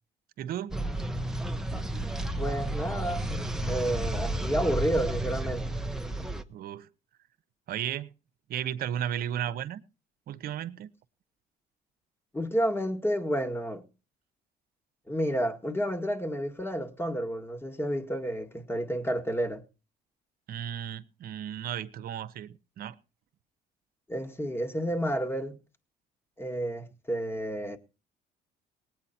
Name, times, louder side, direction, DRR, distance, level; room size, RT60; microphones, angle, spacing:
voice 1, 0.4-0.7 6.5-6.9 7.7-8.1 8.5-9.8 10.3-10.9 20.5-22.9, right 10 dB, 65° right, 1.0 m, -34 dB
sound 1, 0.7-6.4, right 1 dB, 5° right, 0.9 m, -32 dB
voice 2, 2.4-3.3 3.7-5.6 12.3-13.8 15.1-19.6 24.1-25.6 26.4-27.8, equal, 15° left, 1.8 m, -30 dB
19.0 x 8.7 x 4.3 m
cardioid pair, 110°, 17 cm